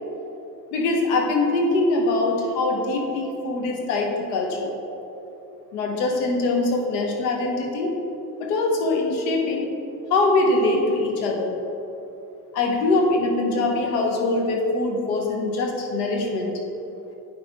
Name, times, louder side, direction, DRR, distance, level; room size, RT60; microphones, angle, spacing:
voice 1, 0.7-4.7 5.7-7.9 8.4-9.7 10.1-11.5 12.5-16.5, left 2 dB, 75° left, 1 dB, 1.3 m, -23 dB
8.7 x 5.8 x 3.6 m, 3.0 s
hypercardioid pair, 60°, 49 cm